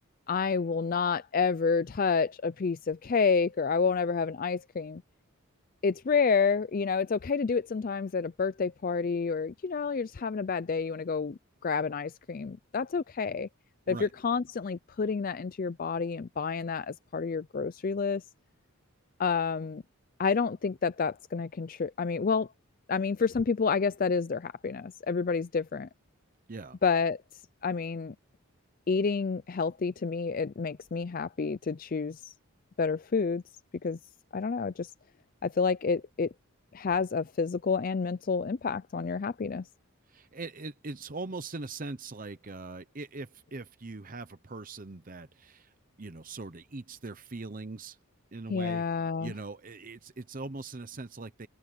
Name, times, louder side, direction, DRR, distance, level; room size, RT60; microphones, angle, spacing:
voice 1, 0.3-5.0 5.8-13.5 13.9-18.2 19.2-19.8 20.2-22.5 22.9-25.9 26.8-27.2 27.6-28.1 28.9-32.3 32.8-33.4 33.8-34.0 34.3-34.9 35.4-36.3 36.7-39.7 48.5-49.3, left 5 dB, 40° left, 0.4 m, -29 dB
voice 2, 40.1-48.0 48.3-48.8 49.2-51.5, right 3 dB, 40° right, 0.8 m, -41 dB
open air
head